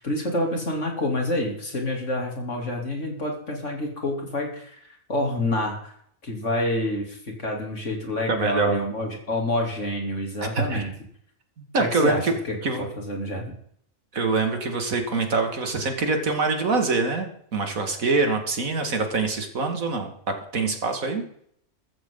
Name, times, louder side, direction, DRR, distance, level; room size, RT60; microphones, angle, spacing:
voice 1, 0.0-4.8 5.1-5.9 6.2-10.9 11.8-12.2 12.5-13.5, left 1 dB, 60° left, 1 dB, 3.6 m, -28 dB
voice 2, 8.3-8.8 10.5-10.9 11.6-12.3 12.6-12.9 14.1-20.1 20.5-21.2, right 3 dB, 75° right, 5 dB, 2.6 m, -24 dB
14.5 x 14.5 x 3.9 m, 0.66 s
omnidirectional pair, 1.4 m